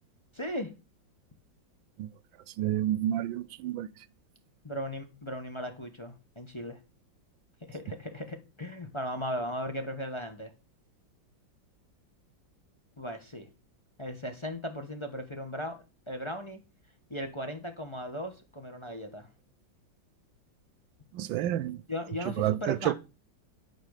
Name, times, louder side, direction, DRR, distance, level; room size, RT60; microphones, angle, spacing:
voice 1, 0.3-0.7 4.6-6.8 7.7-10.5 13.0-13.5 14.0-16.6 17.1-19.3 21.9-22.9, equal, 20° left, 1.1 m, -37 dB
voice 2, 2.6-3.9 21.1-21.8 22.4-22.9, right 12 dB, 90° right, 1.4 m, -29 dB
12.5 x 4.7 x 6.5 m
omnidirectional pair, 2.0 m